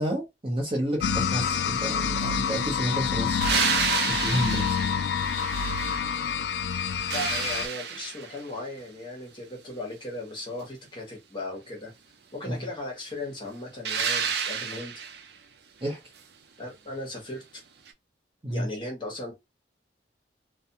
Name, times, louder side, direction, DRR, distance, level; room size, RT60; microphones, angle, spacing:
voice 1, 0.0-3.4 4.1-4.8 12.5-12.6 15.8-16.0 18.4-18.7, equal, 30° right, 0.9 m, -30 dB
sound 1, 1.0-7.7, left 7 dB, 75° left, 0.3 m, -27 dB
sound 2, 3.4-6.3 6.7-8.5 13.8-15.3 17.9-18.0, right 6 dB, 70° right, 0.4 m, -30 dB
voice 2, 7.1-11.9 12.3-14.9 16.6-17.6 18.5-19.3, left 1 dB, 25° left, 0.9 m, -37 dB
2.3 x 2.2 x 2.8 m
head